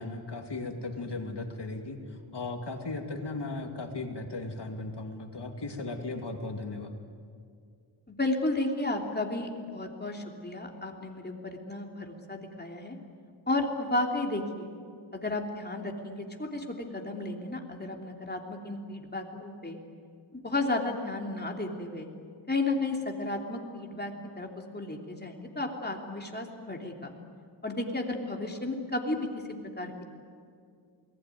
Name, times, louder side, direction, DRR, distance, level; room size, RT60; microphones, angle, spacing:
voice 1, 0.0-2.0 2.3-7.0, left 3 dB, 60° left, 4 dB, 2.8 m, -36 dB
voice 2, 8.1-13.0 13.5-14.7 15.1-19.8 20.3-22.1 22.5-24.5 24.7-27.1 27.6-29.2 29.6-30.0, left 2 dB, 20° left, 1 dB, 3.2 m, -33 dB
28.0 x 20.0 x 9.3 m, 2.3 s
wide cardioid pair, 100°, 48 cm